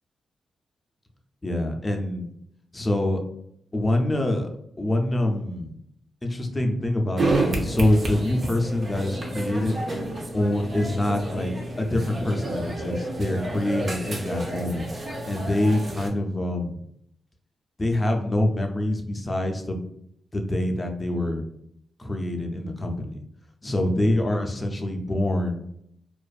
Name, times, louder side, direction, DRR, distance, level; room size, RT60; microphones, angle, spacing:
voice 1, 1.4-2.2 2.7-3.2 3.7-4.5 4.8-5.7 6.2-9.8 10.3-11.5 11.8-14.9 15.2-16.8 17.8-19.8 20.3-21.4 22.0-23.2 23.6-25.6, left 1 dB, 30° left, 3 dB, 0.5 m, -25 dB
sound 1, 7.2-16.1, right 1 dB, 50° right, 0.6 m, -30 dB
2.4 x 2.4 x 2.3 m, 0.72 s
supercardioid pair, 50°, 0 cm